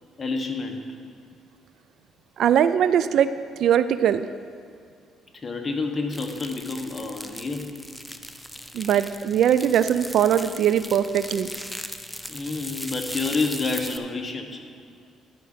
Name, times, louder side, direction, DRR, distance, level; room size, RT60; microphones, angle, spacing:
voice 1, 0.2-0.9 5.3-7.7 12.3-14.6, left 3 dB, 30° left, 4 dB, 1.3 m, -29 dB
voice 2, 2.4-3.3 3.6-4.3 8.7-11.5, right 9 dB, 70° right, 13 dB, 0.4 m, -21 dB
sound 1, 6.1-14.0, equal, ahead, 0.6 m, -38 dB
12.0 x 5.1 x 6.7 m, 2.3 s
supercardioid pair, 75°, 0 cm